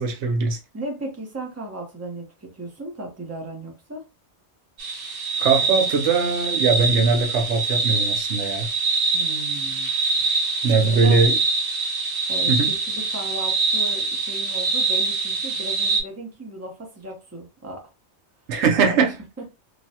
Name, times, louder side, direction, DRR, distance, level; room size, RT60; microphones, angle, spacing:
voice 1, 0.0-0.6 5.4-8.7 10.6-11.4 12.5-12.7 18.5-19.1, right 4 dB, 80° right, 0.9 m, -20 dB
voice 2, 0.7-4.0 9.1-9.9 11.0-11.2 12.3-17.8 18.7-19.1, right 1 dB, 15° right, 0.8 m, -35 dB
sound 1, 4.8-16.0, right 4 dB, 55° right, 1.0 m, -24 dB
3.2 x 2.2 x 2.7 m
omnidirectional pair, 1.2 m